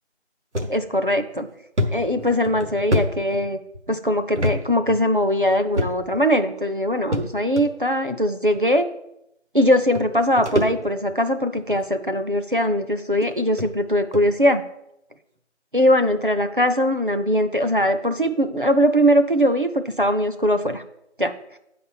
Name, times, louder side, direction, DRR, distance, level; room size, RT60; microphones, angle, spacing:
sound 1, 0.5-0.7 1.2-1.3 1.8-3.8 4.3-4.6 4.9-5.0 5.7-6.2 7.1-7.6 8.5-8.6 9.6-9.7 9.9-11.1 11.6-11.8 12.6-12.7 13.2-13.3 13.6-13.7 14.1-14.3, left 1 dB, 75° right, 1.3 m, -26 dB
voice 1, 0.7-1.5 1.9-3.6 3.9-8.9 9.5-14.6 15.7-19.7 20.0-20.8 21.2-21.3, equal, 45° right, 7 dB, 0.6 m, -21 dB
8.2 x 4.2 x 6.0 m, 0.81 s
figure-of-eight pair, 180°, 35 cm